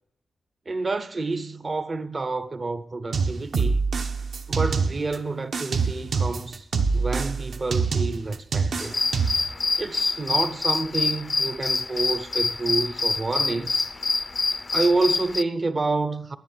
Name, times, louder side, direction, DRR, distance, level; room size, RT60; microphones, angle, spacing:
voice 1, 0.7-3.8 4.5-6.7 6.9-9.0 9.8-13.9 14.7-16.4, right 3 dB, 30° right, 0.6 m, -28 dB
sound 1, 3.1-5.2 5.5-9.5, right 5 dB, 60° right, 1.0 m, -25 dB
sound 2, 8.8-15.4, left 4 dB, 25° left, 0.4 m, -26 dB
11.0 x 10.5 x 5.5 m
wide cardioid pair, 165°, 0 cm